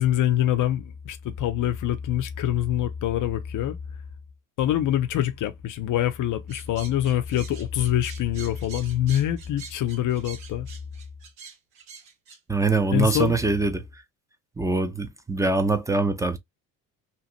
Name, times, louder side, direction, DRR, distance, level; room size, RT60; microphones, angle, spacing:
voice 1, 0.0-3.8 4.6-10.7 12.9-13.3, left 11 dB, 55° left, 0.7 m, -25 dB
sound 1, 6.5-12.4, right 6 dB, 80° right, 1.3 m, -45 dB
voice 2, 12.5-13.8 14.6-16.4, right 3 dB, 10° right, 0.7 m, -23 dB
2.9 x 2.5 x 3.0 m
supercardioid pair, 70°, 38 cm